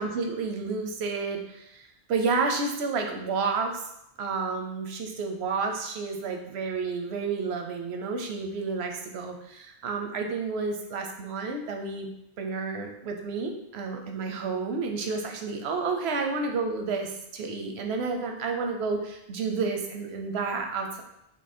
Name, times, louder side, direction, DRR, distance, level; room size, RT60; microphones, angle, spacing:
voice 1, 0.0-3.8 4.2-12.1 12.4-21.0, right 4 dB, 85° right, 3 dB, 0.9 m, -30 dB
3.7 x 3.0 x 4.2 m, 0.79 s
omnidirectional pair, 1.1 m